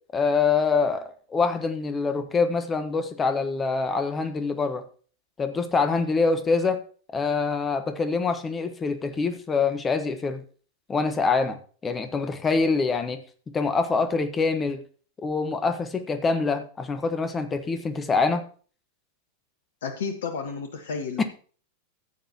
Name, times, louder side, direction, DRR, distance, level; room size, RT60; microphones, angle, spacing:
voice 1, 0.1-4.8 5.4-6.8 7.1-10.4 10.9-13.2 13.5-14.8 15.2-18.4 21.2-21.3, left 4 dB, 20° left, 8 dB, 1.3 m, -25 dB
voice 2, 19.8-21.2, left 5 dB, 60° left, 7 dB, 1.3 m, -32 dB
14.5 x 7.9 x 2.9 m, 0.42 s
figure-of-eight pair, 90°, 0 cm